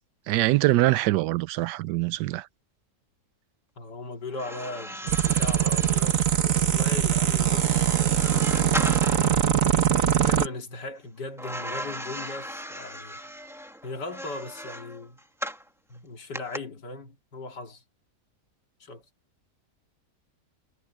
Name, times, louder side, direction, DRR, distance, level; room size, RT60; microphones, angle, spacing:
voice 1, 0.3-2.5, right 17 dB, 85° right, 1.2 m, -23 dB
voice 2, 3.8-8.0 8.6-9.1 10.2-13.3 13.8-15.2 15.9-17.8 18.8-19.0, left 3 dB, 90° left, 2.9 m, -38 dB
sound 1, 4.3-9.4 11.4-15.7 16.3-16.6, equal, ahead, 1.5 m, -38 dB
sound 2, 5.1-10.5, right 10 dB, 55° right, 1.5 m, -22 dB
omnidirectional pair, 1.8 m